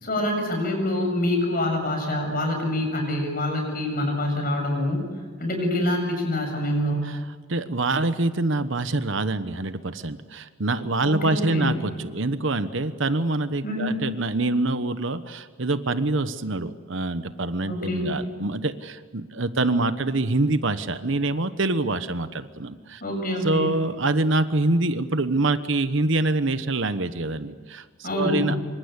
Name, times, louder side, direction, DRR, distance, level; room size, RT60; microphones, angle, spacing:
voice 1, 0.0-5.1 5.4-7.1 11.0-11.8 13.6-14.0 17.7-18.2 23.0-23.8 28.0-28.6, left 1 dB, 40° left, 3 dB, 7.7 m, -26 dB
voice 2, 7.5-23.0 23.4-28.6, right 2 dB, 60° right, 12 dB, 1.1 m, -25 dB
27.0 x 25.0 x 8.3 m, 1.5 s
head